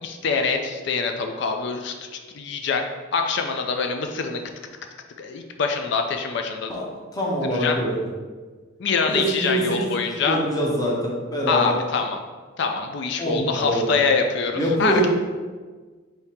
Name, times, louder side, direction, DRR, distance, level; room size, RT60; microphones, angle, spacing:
voice 1, 0.0-2.8 3.1-4.4 5.2-6.7 7.5-7.7 8.8-10.4 11.5-12.2 12.6-14.9, left 5 dB, 60° left, 4 dB, 0.4 m, -24 dB
voice 2, 7.1-8.1 9.1-9.8 10.2-11.8 13.2-13.9 14.6-15.1, right 1 dB, 20° left, -3 dB, 0.7 m, -24 dB
3.6 x 2.7 x 4.3 m, 1.4 s
head